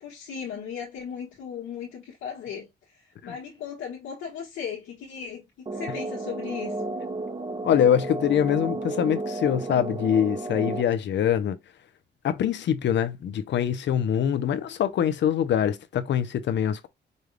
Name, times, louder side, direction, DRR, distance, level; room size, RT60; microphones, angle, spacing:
voice 1, 0.0-2.7 3.2-6.9, left 7 dB, 90° left, 1.4 m, -36 dB
sound 1, 5.7-10.8, right 2 dB, 25° right, 0.9 m, -32 dB
voice 2, 7.6-11.6 12.2-16.9, left 9 dB, 70° left, 0.8 m, -24 dB
5.4 x 2.3 x 3.3 m
cardioid pair, 80°, 19 cm